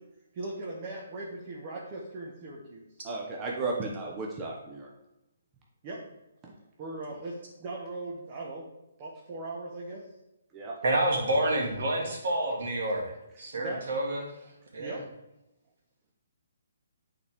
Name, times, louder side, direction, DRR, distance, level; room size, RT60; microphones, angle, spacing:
voice 1, 0.3-2.9 5.8-6.0 6.8-8.7 9.0-10.0 13.6-13.8 14.8-15.0, right 2 dB, 35° right, -3 dB, 1.3 m, -39 dB
voice 2, 3.0-4.9 6.4-6.5 10.5-10.8, right 3 dB, 20° right, -2 dB, 1.0 m, -34 dB
voice 3, 10.8-14.2 14.7-14.9, right 1 dB, 60° right, -1 dB, 2.1 m, -28 dB
8.3 x 4.2 x 3.6 m, 0.91 s
hypercardioid pair, 145°, 0 cm